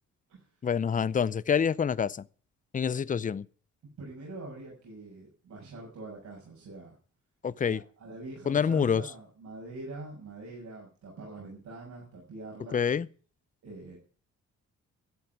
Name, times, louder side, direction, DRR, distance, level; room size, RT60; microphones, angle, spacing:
voice 1, 0.6-2.2 2.7-3.5 7.4-7.8 8.5-9.1 12.7-13.1, left 7 dB, 25° left, 0.6 m, -27 dB
voice 2, 4.0-7.0 7.7-12.8 13.6-14.0, right 2 dB, 65° right, 6.5 m, -44 dB
13.0 x 7.7 x 9.4 m
cardioid pair, 90°, 30 cm